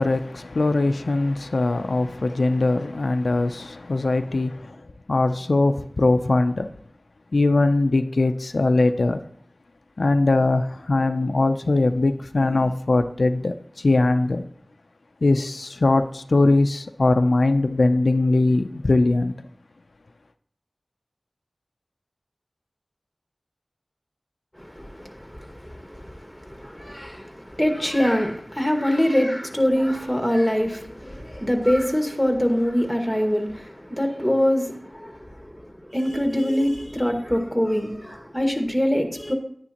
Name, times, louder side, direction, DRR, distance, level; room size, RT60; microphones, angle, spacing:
voice 1, 0.0-4.8 5.1-6.7 7.3-9.2 10.0-14.4 15.2-19.3, left 2 dB, 85° left, 0.4 m, -21 dB
voice 2, 24.6-39.3, equal, 5° left, 1.7 m, -24 dB
10.5 x 9.6 x 2.9 m
wide cardioid pair, 40°, 0 cm